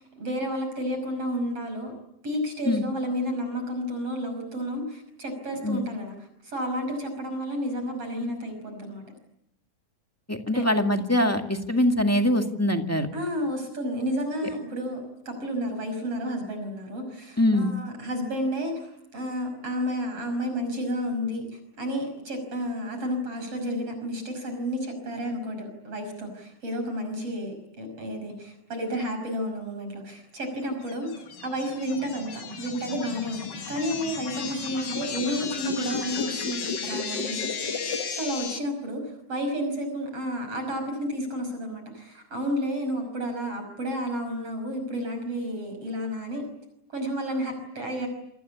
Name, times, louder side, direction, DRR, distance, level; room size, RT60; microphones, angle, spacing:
voice 1, 0.0-1.9 2.2-6.1 6.4-9.0 10.5-10.7 13.1-33.4 33.7-46.4 46.9-48.1, equal, 50° right, 6 dB, 6.7 m, -31 dB
voice 2, 10.3-13.1 17.4-17.7, left 1 dB, 10° left, 4 dB, 1.1 m, -23 dB
sound 1, 30.9-38.6, left 5 dB, 40° left, 1.9 m, -33 dB
27.5 x 25.5 x 8.4 m, 0.79 s
omnidirectional pair, 3.5 m